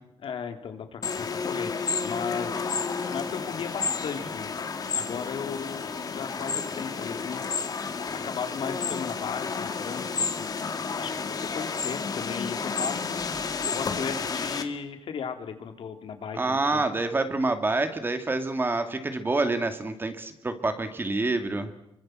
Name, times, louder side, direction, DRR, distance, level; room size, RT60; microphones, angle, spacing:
voice 1, 0.2-4.6 4.9-7.4 7.7-10.7 10.9-11.1 11.4-13.2 13.6-16.8, left 6 dB, 65° left, 6 dB, 3.0 m, -36 dB
sound 1, 1.0-14.6, left 5 dB, 40° left, 2.3 m, -31 dB
voice 2, 16.3-21.7, right 2 dB, 20° right, 7 dB, 2.4 m, -27 dB
26.5 x 24.0 x 7.7 m, 0.83 s
wide cardioid pair, 150°, 10 cm